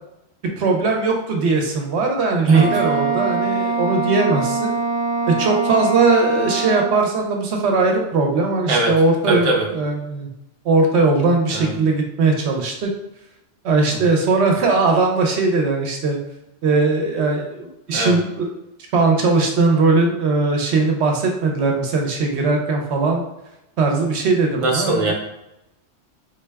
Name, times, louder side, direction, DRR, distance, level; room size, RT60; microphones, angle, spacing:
voice 1, 0.6-4.8 5.3-10.3 10.6-12.9 13.6-16.2 16.6-18.5 18.9-23.2 23.8-25.1, right 3 dB, 70° right, 2 dB, 0.9 m, -19 dB
Wind instrument woodwind instrument, 2.5-7.0, right 4 dB, 90° left, 1.3 m, -23 dB
voice 2, 2.5-2.9 8.7-8.9 9.3-9.7 11.5-11.7 17.9-18.2 24.6-25.1, right 3 dB, 40° right, -1 dB, 0.5 m, -19 dB
3.8 x 2.2 x 3.3 m, 0.88 s
omnidirectional pair, 1.2 m